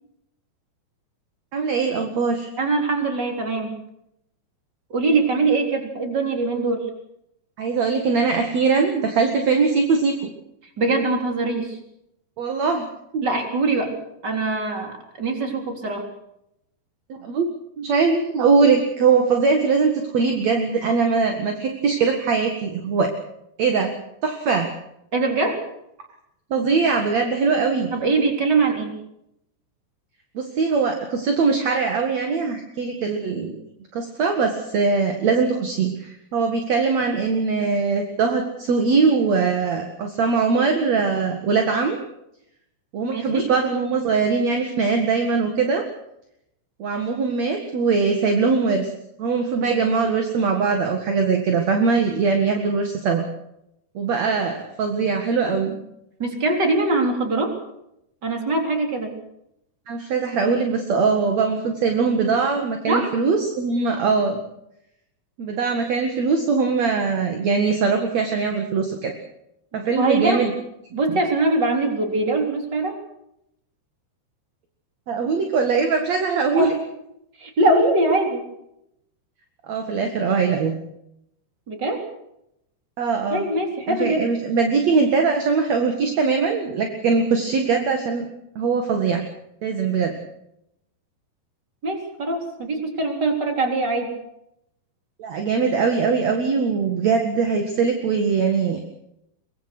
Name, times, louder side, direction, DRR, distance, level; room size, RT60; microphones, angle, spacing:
voice 1, 1.5-2.5 7.6-10.3 12.4-12.8 13.1-13.3 17.1-17.5 17.8-23.1 23.6-23.9 24.2-24.7 26.5-27.9 30.3-33.5 33.9-42.0 42.9-45.8 46.8-48.9 49.2-53.2 53.9-55.7 59.9-64.4 65.4-69.1 69.7-70.5 75.1-76.7 79.7-80.7 83.0-83.5 83.9-88.3 88.6-89.3 89.6-90.1 95.2-98.8, right 5 dB, 50° right, 4 dB, 2.3 m, -21 dB
voice 2, 2.6-3.7 4.9-6.9 10.8-11.8 13.2-14.0 14.2-16.0 25.1-25.6 27.9-28.9 43.1-43.5 49.5-49.9 56.2-57.6 58.2-59.1 62.9-63.1 69.7-70.5 70.9-73.0 76.5-76.7 77.4-78.5 81.7-82.0 83.3-84.3 91.8-94.1, right 2 dB, 25° right, 3 dB, 3.8 m, -22 dB
23.5 x 22.5 x 6.1 m, 0.80 s
omnidirectional pair, 5.3 m